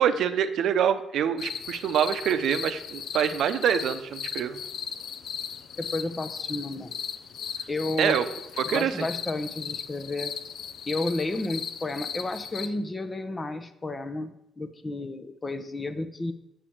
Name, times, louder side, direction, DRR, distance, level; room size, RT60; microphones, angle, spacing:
voice 1, 0.0-4.6 8.0-8.2 8.6-9.1, right 8 dB, 75° right, 10 dB, 0.6 m, -25 dB
sound 1, 1.4-12.7, left 7 dB, 65° left, 0.6 m, -37 dB
voice 2, 5.8-6.9 7.7-8.2 8.6-10.3 10.9-16.3, left 2 dB, 25° left, 9 dB, 0.9 m, -32 dB
7.4 x 5.0 x 7.2 m, 0.87 s
cardioid pair, 90°, 0 cm